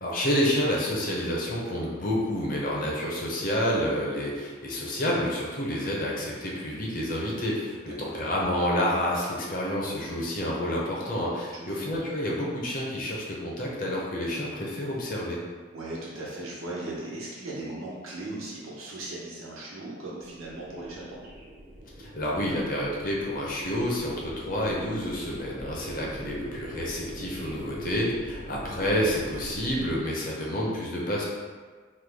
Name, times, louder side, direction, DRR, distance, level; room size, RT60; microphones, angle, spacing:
voice 1, 0.0-15.4 22.0-31.2, equal, 40° left, -3 dB, 0.6 m, -29 dB
voice 2, 7.9-8.2 11.5-11.8 15.7-21.2 28.8-28.9, right 2 dB, 90° right, -5 dB, 0.9 m, -38 dB
sound 1, 20.2-30.0, right 1 dB, 45° right, 0.5 m, -42 dB
3.1 x 2.2 x 3.4 m, 1.5 s
head